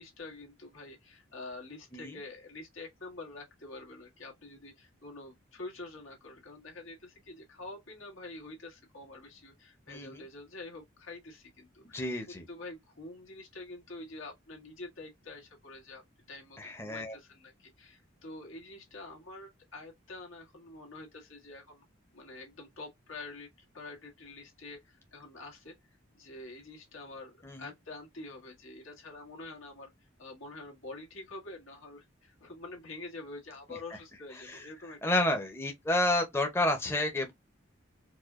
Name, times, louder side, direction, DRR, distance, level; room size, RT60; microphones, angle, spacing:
voice 1, 0.0-16.0 16.3-21.9 22.1-23.5 23.7-29.9 30.2-35.2 36.1-36.2, left 2 dB, 85° left, 1.8 m, -47 dB
voice 2, 9.9-10.2 11.9-12.4 16.6-17.1 27.4-27.7 34.4-34.6 35.0-37.3, left 1 dB, 10° left, 0.6 m, -30 dB
4.7 x 2.2 x 2.4 m
head